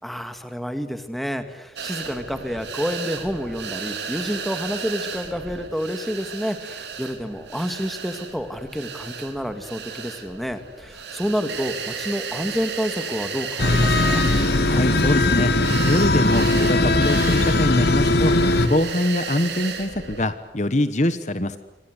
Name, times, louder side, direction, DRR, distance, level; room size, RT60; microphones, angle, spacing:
voice 1, 0.0-14.2, equal, ahead, 8 dB, 2.2 m, -29 dB
sound 1, 1.8-20.3, right 5 dB, 75° right, 4.1 m, -34 dB
sound 2, 13.6-18.7, left 2 dB, 65° left, 2.8 m, -19 dB
voice 2, 14.6-18.4 18.7-21.6, left 1 dB, 40° left, 12 dB, 1.1 m, -23 dB
29.5 x 24.5 x 8.2 m, 0.90 s
head